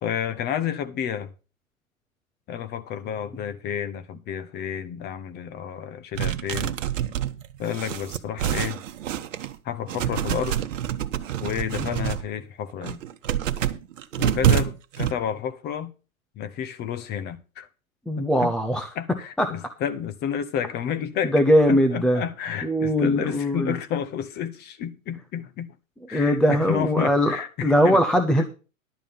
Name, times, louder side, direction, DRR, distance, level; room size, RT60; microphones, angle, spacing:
voice 1, 0.0-1.3 2.5-6.8 7.6-8.8 9.6-10.6 11.4-13.0 14.2-15.9 16.4-17.7 18.2-18.5 19.0-21.3 21.7-25.7 26.1-28.0 28.4-28.5, left 8 dB, 25° left, 1.0 m, -30 dB
sound 1, 6.1-9.5 9.9-12.2 12.7-15.1, right 10 dB, 60° right, 1.2 m, -26 dB
voice 2, 18.1-18.9 19.4-19.5 21.3-22.2 22.6-23.7 26.1-27.4 27.6-28.4, equal, ahead, 0.4 m, -20 dB
11.5 x 7.3 x 5.3 m
hypercardioid pair, 125°, 42 cm